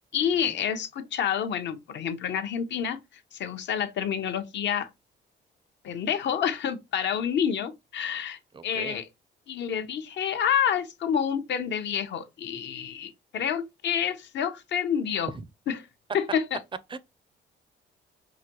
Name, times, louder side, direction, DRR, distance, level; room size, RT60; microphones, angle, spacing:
voice 1, 0.1-4.9 5.8-9.1 9.5-15.3 15.7-15.9 16.1-16.6, left 8 dB, 65° left, 0.7 m, -28 dB
voice 2, 8.5-9.0 15.3-15.4 16.9-17.0, right 5 dB, 25° right, 0.4 m, -39 dB
4.8 x 2.2 x 2.9 m
cardioid pair, 90°, 20 cm